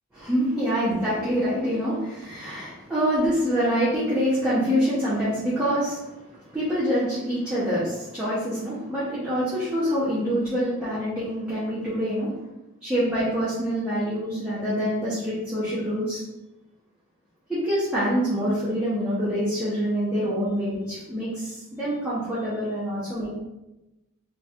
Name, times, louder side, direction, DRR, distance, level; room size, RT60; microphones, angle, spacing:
voice 1, 0.1-6.0 6.5-12.3 12.8-16.2 17.5-23.3, equal, 5° right, -12 dB, 1.0 m, -25 dB
3.2 x 2.5 x 4.2 m, 0.99 s
head